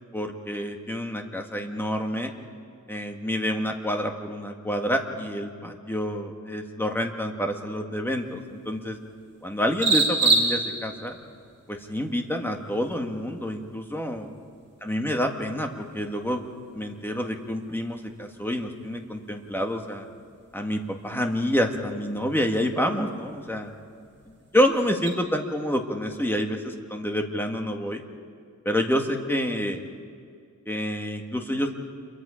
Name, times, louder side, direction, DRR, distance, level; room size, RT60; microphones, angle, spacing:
voice 1, 0.1-2.3 2.9-9.0 9.4-11.2 11.7-14.3 14.8-16.4 16.7-20.1 20.5-23.7 24.5-28.0 28.6-29.8 30.6-31.7, equal, 5° left, 3 dB, 1.6 m, -28 dB
sound 1, 8.1-25.1, right 3 dB, 35° right, 5.2 m, -33 dB
27.5 x 23.0 x 5.1 m, 2.4 s
wide cardioid pair, 165°, 34 cm